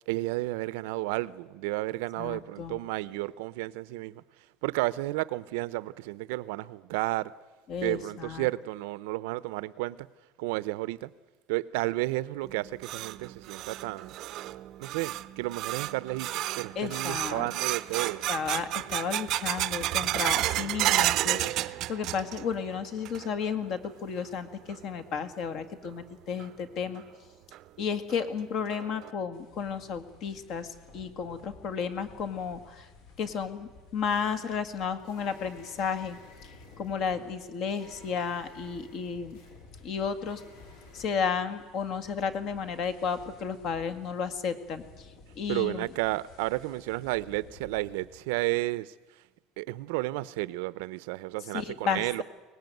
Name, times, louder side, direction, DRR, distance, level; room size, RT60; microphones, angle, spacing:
voice 1, 0.1-4.2 4.6-7.3 7.8-10.1 10.4-11.1 11.5-14.1 14.8-18.2 45.5-48.9 49.6-52.2, right 19 dB, 90° right, 0.7 m, -32 dB
voice 2, 2.2-2.8 7.7-8.5 16.8-17.5 18.3-27.0 27.8-32.9 33.2-36.5 36.8-39.4 39.8-40.4 40.9-45.1 45.4-45.9 51.5-52.2, left 6 dB, 45° left, 1.9 m, -33 dB
sound 1, 12.4-22.6 22.8-23.5 23.8-23.9 24.7-24.8 26.4-26.5 27.0-27.1 27.5-27.6 28.1-28.2 28.7-29.1, right 15 dB, 45° right, 0.7 m, -31 dB
sound 2, 29.3-48.4, left 3 dB, 65° left, 5.6 m, -55 dB
sound 3, 34.4-41.1, left 3 dB, 90° left, 5.8 m, -55 dB
23.5 x 19.5 x 9.3 m
cardioid pair, 165°, 0 cm